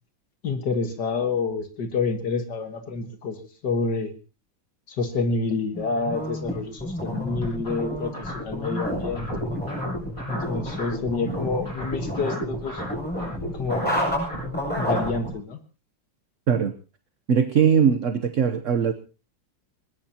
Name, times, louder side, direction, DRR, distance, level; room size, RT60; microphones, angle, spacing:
voice 1, 0.4-4.1 4.9-9.6 10.3-12.8 13.5-13.9 14.8-15.6, left 4 dB, 60° left, 7 dB, 2.1 m, -28 dB
sound 1, 5.7-15.3, equal, 5° left, 7.7 m, -31 dB
sound 2, 7.4-11.1 11.3-15.1, equal, 40° left, 7.6 m, -34 dB
voice 2, 17.3-18.9, right 7 dB, 50° right, 10 dB, 1.0 m, -20 dB
21.0 x 20.5 x 2.9 m, 0.34 s
omnidirectional pair, 2.2 m